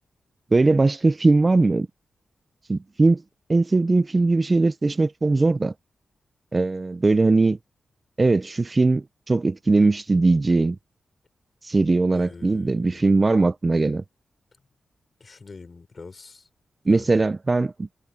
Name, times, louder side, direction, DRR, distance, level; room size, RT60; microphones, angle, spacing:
voice 1, 0.5-1.9 2.7-3.2 3.5-5.7 6.5-7.6 8.2-10.8 11.6-14.0 16.9-17.9, right 3 dB, 25° right, 0.4 m, -20 dB
voice 2, 12.1-13.2 15.2-16.5 16.9-17.3, left 4 dB, 35° left, 4.7 m, -44 dB
wide cardioid pair, 145°, 0 cm